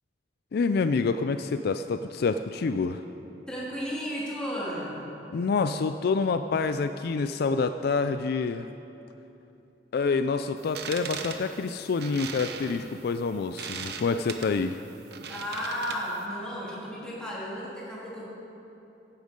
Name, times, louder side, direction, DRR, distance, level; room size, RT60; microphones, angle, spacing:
voice 1, 0.5-3.0 5.3-8.7 9.9-14.8, left 4 dB, 60° left, 10 dB, 0.4 m, -27 dB
voice 2, 3.5-4.9 15.3-18.2, equal, 5° left, -7 dB, 2.9 m, -33 dB
sound 1, 10.6-16.2, right 6 dB, 65° right, 0.9 m, -39 dB
16.0 x 10.5 x 5.2 m, 3.0 s
head